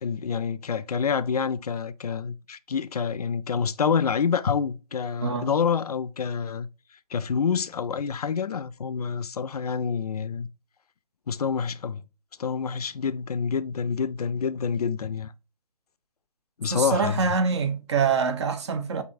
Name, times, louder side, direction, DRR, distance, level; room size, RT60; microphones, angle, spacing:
voice 1, 0.0-6.7 7.1-10.5 11.3-12.0 12.4-15.3 16.6-17.2, left 6 dB, 70° left, 0.4 m, -27 dB
voice 2, 16.7-19.0, right 5 dB, 45° right, 0.7 m, -25 dB
6.0 x 2.8 x 2.5 m
figure-of-eight pair, 140°, 21 cm